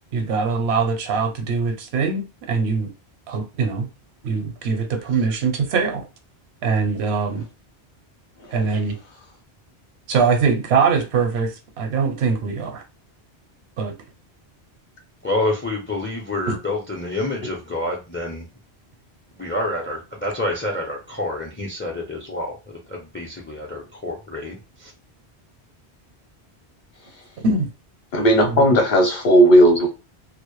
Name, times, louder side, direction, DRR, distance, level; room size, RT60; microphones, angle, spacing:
voice 1, 0.1-2.9 3.3-3.9 4.2-6.1 6.6-7.4 8.5-9.0 10.1-12.8 13.8-13.9 16.5-16.6 27.4-27.7 28.4-28.6, right 5 dB, 80° right, 0.8 m, -22 dB
voice 2, 15.2-18.4 19.4-22.6 22.9-24.9, left 1 dB, 20° left, 0.3 m, -28 dB
voice 3, 28.1-29.9, equal, 50° left, 0.7 m, -14 dB
2.1 x 2.0 x 2.9 m
omnidirectional pair, 1.1 m